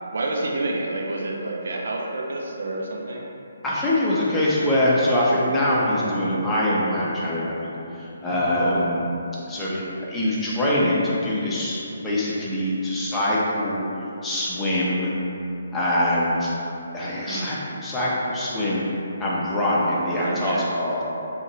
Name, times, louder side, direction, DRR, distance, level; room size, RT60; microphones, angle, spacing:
voice 1, 0.1-3.3 8.6-8.9 17.2-17.6 20.1-20.7, right 2 dB, 65° right, -2 dB, 0.5 m, -28 dB
voice 2, 3.6-7.7 8.0-9.1 9.5-13.8 14.2-15.1 15.7-16.5 16.9-18.9 19.2-21.0, left 1 dB, 10° left, -8 dB, 0.6 m, -23 dB
2.7 x 2.5 x 4.1 m, 2.8 s
figure-of-eight pair, 140°, 0 cm